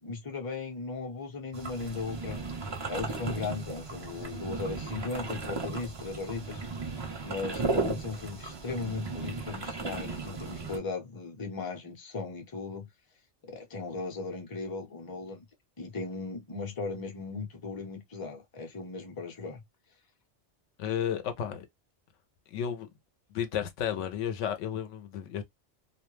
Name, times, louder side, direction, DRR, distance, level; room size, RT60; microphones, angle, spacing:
voice 1, 0.0-2.4 2.9-6.6 7.2-12.9 13.5-15.4 15.8-19.6, left 4 dB, 25° left, 0.5 m, -37 dB
sound 1, 1.5-10.8, right 3 dB, 35° right, 0.4 m, -36 dB
voice 2, 20.8-21.7 22.5-22.9 23.3-25.4, left 9 dB, 85° left, 0.9 m, -32 dB
2.3 x 2.1 x 3.0 m
omnidirectional pair, 1.2 m